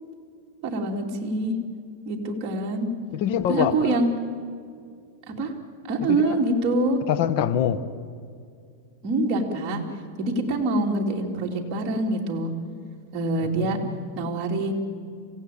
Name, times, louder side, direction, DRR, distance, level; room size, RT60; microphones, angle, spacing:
voice 1, 0.6-1.5 2.0-2.9 3.5-4.1 5.3-5.5 5.9-7.0 9.0-9.8 10.2-12.5 13.1-13.8 14.2-14.7, right 2 dB, 30° right, -1 dB, 3.1 m, -25 dB
voice 2, 3.1-4.0 6.0-6.4 7.1-7.8 14.1-14.3, left 10 dB, 50° left, 13 dB, 1.2 m, -24 dB
26.5 x 16.5 x 8.7 m, 2.3 s
supercardioid pair, 150°, 0 cm